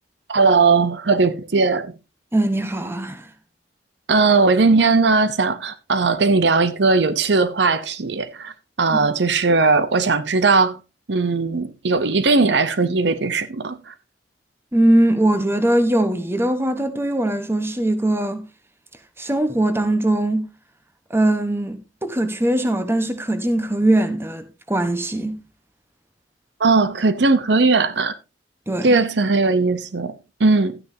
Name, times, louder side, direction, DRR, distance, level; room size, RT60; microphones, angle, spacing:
voice 1, 0.3-1.9 4.1-8.5 8.8-10.8 11.1-13.9 26.6-28.1 28.8-30.8, right 3 dB, 75° right, 0.8 m, -18 dB
voice 2, 2.3-3.3 8.9-9.0 14.7-18.4 19.2-20.4 21.1-25.4 28.7-29.0, right 1 dB, 15° right, 1.0 m, -21 dB
12.5 x 9.6 x 2.7 m
head